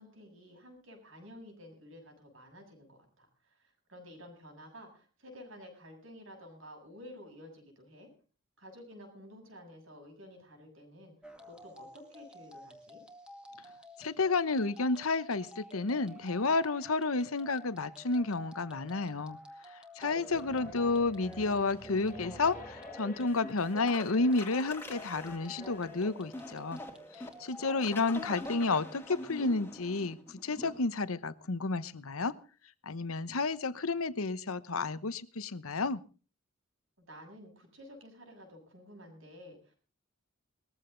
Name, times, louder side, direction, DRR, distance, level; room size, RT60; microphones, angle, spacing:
voice 1, 0.0-8.1 8.6-11.1 11.5-13.0 20.3-20.6 37.1-39.8, equal, 65° right, 7.3 m, -52 dB
sound 1, 11.2-28.7, left 1 dB, 5° right, 2.1 m, -52 dB
voice 2, 14.0-19.4 20.0-26.8 27.4-32.3 32.9-36.0, left 3 dB, 85° left, 1.0 m, -31 dB
sound 2, 20.0-30.8, left 2 dB, 10° left, 2.1 m, -46 dB
sound 3, 20.3-26.0, left 1 dB, 40° left, 2.2 m, -53 dB
20.5 x 14.5 x 3.9 m
head